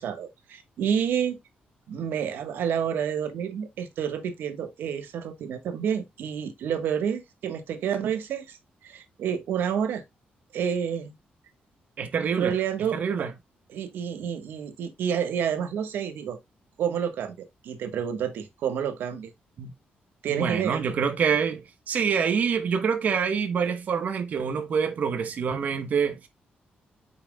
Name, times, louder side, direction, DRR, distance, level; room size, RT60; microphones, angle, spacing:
voice 1, 0.0-1.4 1.9-8.6 8.8-10.0 10.5-11.2 12.4-13.3 13.7-16.4 16.8-19.3 20.2-20.8, right 8 dB, 90° right, 1.3 m, -29 dB
voice 2, 12.0-12.5 12.9-13.3 19.6-19.7 20.3-26.3, right 6 dB, 50° right, 1.0 m, -26 dB
8.8 x 5.8 x 2.2 m
wide cardioid pair, 170°, 3 cm